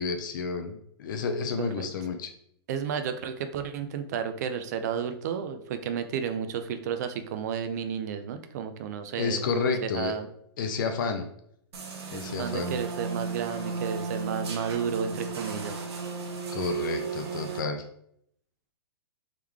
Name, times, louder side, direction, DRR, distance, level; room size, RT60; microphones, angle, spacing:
voice 1, 0.0-2.3 9.2-10.1 10.6-11.3 12.1-12.7 16.5-17.8, left 5 dB, 50° left, 6 dB, 0.5 m, -30 dB
voice 2, 1.6-1.9 2.7-9.5 9.8-10.3 12.4-15.7, right 7 dB, 40° right, 9 dB, 0.4 m, -32 dB
sound 1, 11.7-17.6, right 5 dB, 70° right, 1.0 m, -34 dB
3.7 x 3.1 x 3.4 m, 0.70 s
hypercardioid pair, 160°, 14 cm